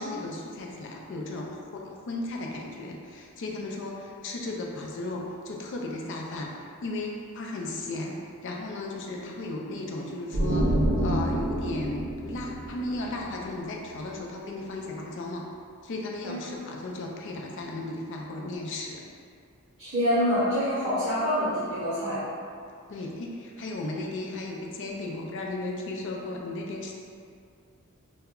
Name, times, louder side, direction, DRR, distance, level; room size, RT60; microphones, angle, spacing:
voice 1, 0.0-6.5 6.8-15.4 15.8-19.0 22.9-26.9, left 2 dB, 55° left, -1 dB, 0.4 m, -35 dB
sound 1, 10.3-13.9, right 1 dB, 80° right, 0.5 m, -28 dB
voice 2, 19.8-22.2, equal, 25° right, -13 dB, 0.7 m, -26 dB
2.2 x 2.0 x 3.6 m, 2.3 s
head